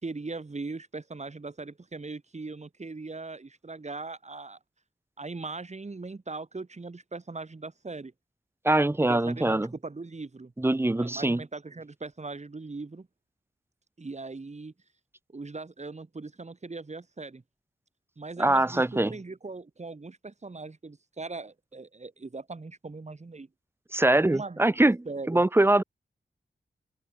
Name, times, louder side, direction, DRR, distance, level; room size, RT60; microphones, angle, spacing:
voice 1, 0.0-4.6 5.2-8.1 9.0-10.5 11.0-13.1 14.0-14.7 15.3-17.4 18.2-23.5 24.2-24.6 25.1-25.4, right 3 dB, 40° right, 6.5 m, -40 dB
voice 2, 8.6-9.7 10.6-11.4 18.4-19.1 23.9-25.8, right 2 dB, 15° right, 0.6 m, -23 dB
open air
wide cardioid pair, 80°, 18 cm